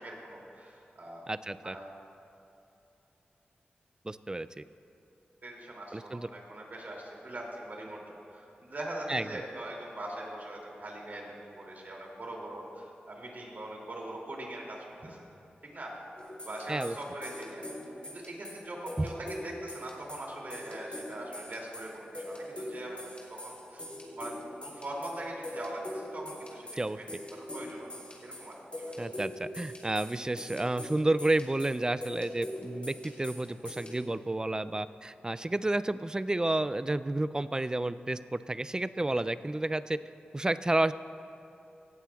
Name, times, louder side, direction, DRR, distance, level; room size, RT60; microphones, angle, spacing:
voice 1, 0.0-1.3 1.6-2.0 5.4-15.2 15.6-16.0 16.4-17.7 18.0-23.9 24.2-27.1 27.3-27.9 28.2-28.8, right 1 dB, 55° right, -2 dB, 2.6 m, -42 dB
voice 2, 1.3-1.8 4.0-4.6 5.9-6.3 9.1-9.3 16.7-17.0 19.0-19.1 26.8-27.0 29.0-40.0 40.3-40.9, right 2 dB, 20° right, 15 dB, 0.3 m, -31 dB
sound 1, 16.2-34.0, left 1 dB, 35° left, 3.0 m, -42 dB
17.5 x 14.5 x 2.3 m, 2.9 s
wide cardioid pair, 75°, 4 cm